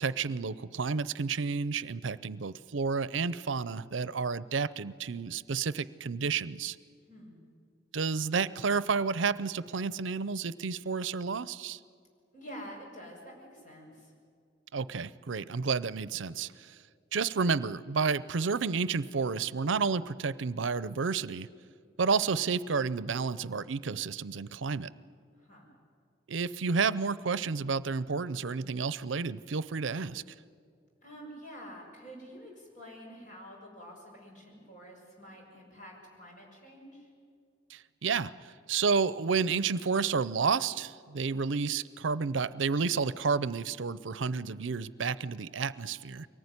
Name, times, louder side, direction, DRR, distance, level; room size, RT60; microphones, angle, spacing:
voice 1, 0.0-6.8 7.9-11.8 14.7-16.8 17.1-21.5 22.0-24.9 26.3-30.2 37.7-46.3, right 5 dB, 80° right, 17 dB, 0.6 m, -31 dB
voice 2, 7.1-7.4 12.3-14.1 25.4-25.7 31.0-37.1, equal, 40° left, -1 dB, 6.5 m, -48 dB
23.5 x 19.0 x 9.7 m, 2.2 s
head